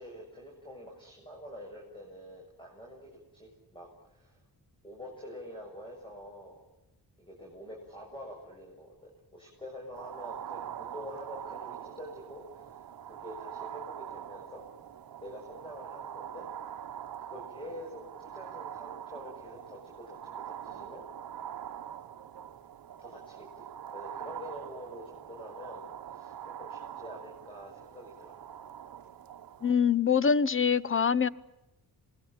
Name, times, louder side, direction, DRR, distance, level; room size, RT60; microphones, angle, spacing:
voice 1, 0.0-4.4 4.8-6.6 7.2-14.6 15.2-16.5 17.2-21.1 23.0-28.4, equal, 10° left, 7.0 m, -46 dB
sound 1, 9.9-29.7, right 9 dB, 60° right, 1.2 m, -44 dB
voice 2, 29.6-31.3, left 6 dB, 30° left, 0.9 m, -24 dB
27.0 x 21.0 x 8.9 m
cardioid pair, 120°, 40 cm